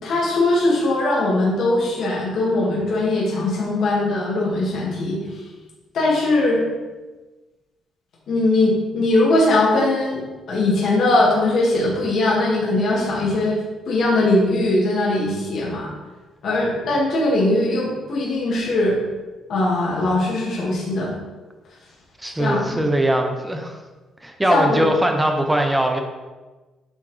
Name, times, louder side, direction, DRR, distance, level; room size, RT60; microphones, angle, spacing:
voice 1, 0.0-5.2 5.9-6.6 8.3-10.2 10.5-13.6 13.9-15.9 16.4-19.0 19.5-21.1 22.4-22.7 24.5-24.8, left 2 dB, 50° left, -5 dB, 2.0 m, -20 dB
voice 2, 22.2-23.8 24.2-26.0, right 1 dB, 5° right, 4 dB, 0.6 m, -21 dB
8.3 x 5.7 x 3.3 m, 1.2 s
cardioid pair, 175°, 0 cm